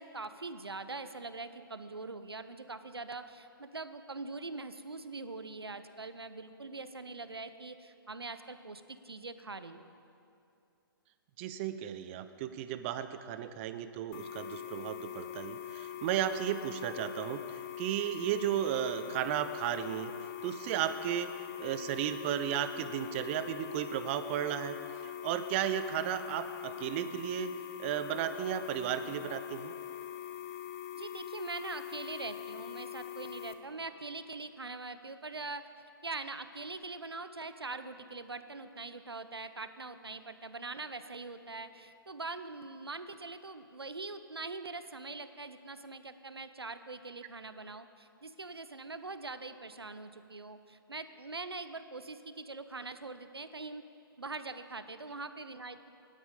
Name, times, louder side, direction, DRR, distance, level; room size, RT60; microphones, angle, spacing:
voice 1, 0.0-9.9 30.9-35.7 36.0-53.8 54.2-55.9, right 3 dB, 90° right, 11 dB, 0.7 m, -43 dB
voice 2, 11.4-20.1 20.4-21.3 21.6-24.8 25.0-27.5 27.8-29.7, right 10 dB, 30° right, 11 dB, 0.6 m, -34 dB
sound 1, 14.1-33.5, left 11 dB, 35° left, 0.8 m, -43 dB
17.0 x 12.0 x 3.7 m, 2.6 s
figure-of-eight pair, 130°, 13 cm